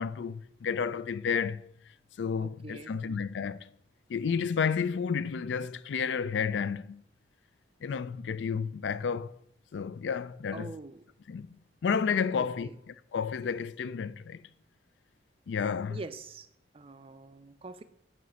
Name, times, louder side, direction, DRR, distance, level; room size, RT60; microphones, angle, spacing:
voice 1, 0.0-1.7 2.2-3.7 4.1-7.0 7.8-9.4 9.7-10.7 11.3-11.5 11.8-14.4 15.5-16.0, left 6 dB, 80° left, 0.4 m, -31 dB
voice 2, 2.4-3.0 10.5-11.0 12.4-12.8 15.9-16.5 16.7-17.8, right 3 dB, 30° right, 0.4 m, -44 dB
9.0 x 3.1 x 6.2 m
head